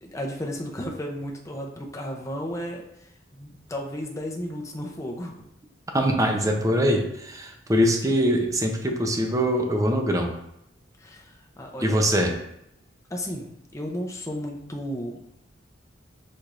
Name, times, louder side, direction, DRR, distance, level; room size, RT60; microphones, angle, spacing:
voice 1, 0.0-2.8 3.3-5.4 11.0-12.0 13.1-15.2, equal, 15° left, 0 dB, 0.7 m, -33 dB
voice 2, 5.9-10.3 11.8-12.3, equal, 20° right, 2 dB, 0.6 m, -23 dB
4.9 x 4.2 x 2.5 m, 0.79 s
head